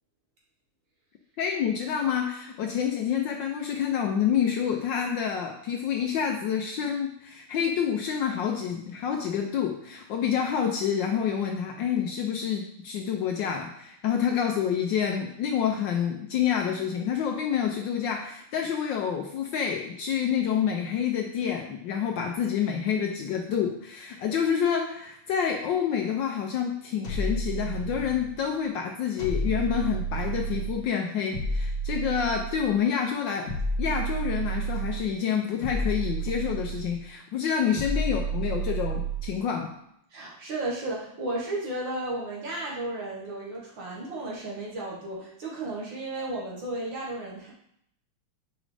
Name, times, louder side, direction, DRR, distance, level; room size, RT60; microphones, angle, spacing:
voice 1, 1.4-39.7, left 8 dB, 75° left, 2 dB, 1.1 m, -28 dB
sound 1, 27.0-28.4 29.2-30.8 31.3-32.7 33.5-35.1 35.6-37.0 37.8-39.4, right 3 dB, 50° left, 1.3 m, -30 dB
voice 2, 40.1-47.5, right 2 dB, 60° right, -3 dB, 2.1 m, -34 dB
6.2 x 4.9 x 3.3 m, 0.73 s
omnidirectional pair, 2.4 m